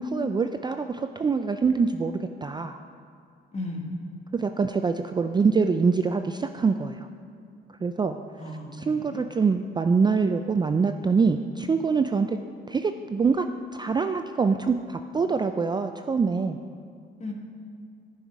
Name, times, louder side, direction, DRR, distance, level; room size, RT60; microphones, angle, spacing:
voice 1, 0.0-2.8 4.3-7.1 7.8-8.2 8.7-12.4 12.7-13.5 13.7-16.6, right 5 dB, 20° right, 7 dB, 0.3 m, -24 dB
voice 2, 3.5-3.9 8.4-9.2 17.2-17.3, left 2 dB, 35° left, 1 dB, 1.5 m, -35 dB
10.5 x 5.6 x 4.8 m, 2.4 s
cardioid pair, 90°, 20 cm